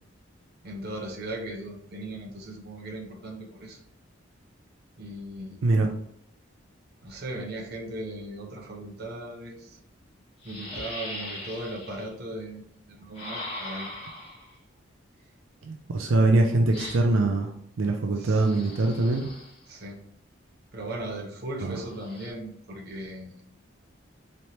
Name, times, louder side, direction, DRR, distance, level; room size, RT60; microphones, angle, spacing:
voice 1, 0.6-3.8 5.0-5.6 7.0-9.8 10.4-13.9 18.1-18.4 19.7-20.0 20.7-23.3, right 1 dB, 50° right, 0 dB, 0.9 m, -38 dB
sound 1, 9.7-9.8 10.4-12.1 13.1-14.5 16.7-17.3 18.3-19.7 21.8-22.3, left 1 dB, 25° left, 1.2 m, -40 dB
voice 2, 15.6-17.5 17.8-19.3 21.6-21.8, right 2 dB, 85° right, 3 dB, 0.5 m, -23 dB
4.3 x 3.2 x 2.7 m, 0.70 s
head